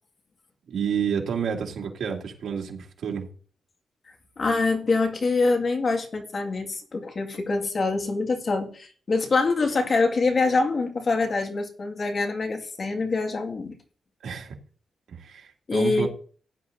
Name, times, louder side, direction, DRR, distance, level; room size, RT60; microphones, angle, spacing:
voice 1, 0.7-3.3 14.2-14.6 15.1-16.1, right 7 dB, 80° right, 0 dB, 2.6 m, -30 dB
voice 2, 4.4-13.8 15.7-16.1, left 3 dB, 40° left, 3 dB, 2.1 m, -25 dB
16.5 x 10.5 x 2.7 m, 0.43 s
wide cardioid pair, 125°, 0 cm